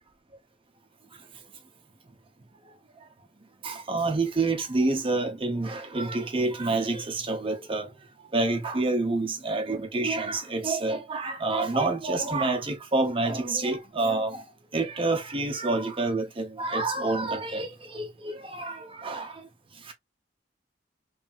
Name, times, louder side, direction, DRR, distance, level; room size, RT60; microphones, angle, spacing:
voice 1, 3.6-7.8 8.3-14.4 14.7-19.3, right 2 dB, 30° right, 0.7 m, -28 dB
3.1 x 2.7 x 2.4 m
head